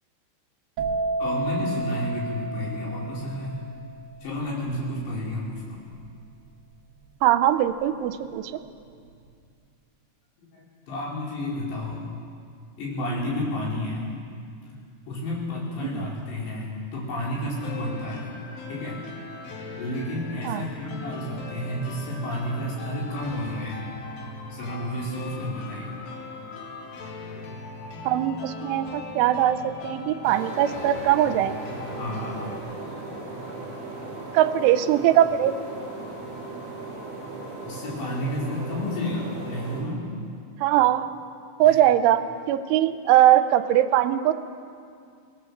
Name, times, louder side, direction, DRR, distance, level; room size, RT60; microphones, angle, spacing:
sound 1, 0.8-8.3 8.6-9.1, right 2 dB, 65° right, 1.6 m, -32 dB
voice 1, 1.2-3.6 4.2-5.8 10.4-12.0 12.8-14.0 14.6-14.8 15.1-18.3 18.7-19.0 19.8-23.8 24.5-26.0 27.4-27.5 31.9-33.8 34.1-34.2 36.0-36.3 37.6-40.1 41.6-41.8, left 1 dB, 65° left, -4 dB, 6.9 m, -31 dB
voice 2, 7.2-8.5 15.8-16.0 20.4-20.6 28.1-31.5 34.3-35.5 40.6-41.1 41.6-44.3, right 12 dB, 85° right, 11 dB, 3.2 m, -21 dB
sound 2, 17.6-32.6, left 3 dB, 85° left, 4.5 m, -39 dB
sound 3, 30.2-39.8, right 2 dB, 40° right, 5.4 m, -37 dB
24.0 x 19.0 x 7.2 m, 2.3 s
omnidirectional pair, 5.5 m